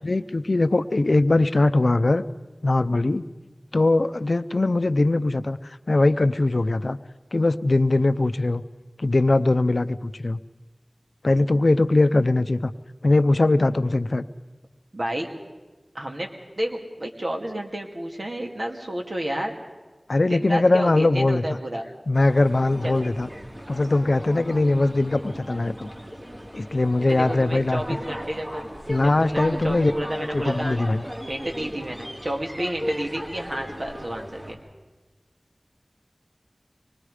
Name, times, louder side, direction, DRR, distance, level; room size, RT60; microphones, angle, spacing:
voice 1, 0.0-2.2 2.6-3.2 3.7-5.6 5.9-7.0 7.3-8.6 9.0-10.4 11.2-12.7 13.0-14.2 20.1-21.4 22.1-23.3 23.7-25.9 26.5-28.0 28.9-29.9 30.3-31.0, left 2 dB, 75° left, 12 dB, 0.6 m, -21 dB
voice 2, 14.9-15.3 15.9-16.3 16.6-19.6 20.3-21.9 22.8-23.0 27.0-28.7 29.0-30.8 31.3-34.6, right 1 dB, 60° right, 2 dB, 2.4 m, -30 dB
sound 1, 22.1-34.6, equal, 30° right, 3.1 m, -37 dB
25.0 x 20.5 x 5.0 m, 1.2 s
wide cardioid pair, 45°, 0 cm